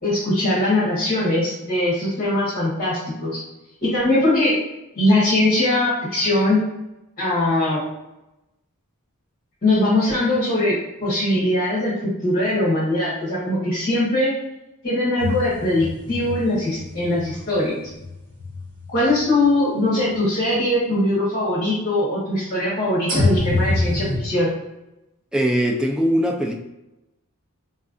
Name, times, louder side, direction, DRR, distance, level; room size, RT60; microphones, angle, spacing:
voice 1, 0.0-3.4 3.8-4.5 4.9-6.6 7.2-7.8 9.6-14.3 14.8-17.7 18.9-24.5, left 1 dB, 40° left, -8 dB, 1.3 m, -21 dB
sound 1, 15.2-19.4 20.1-20.2 23.1-24.2, left 2 dB, 40° right, 1.4 m, -26 dB
voice 2, 25.3-26.5, equal, 5° right, 2 dB, 0.4 m, -20 dB
4.3 x 3.2 x 2.5 m, 0.95 s
head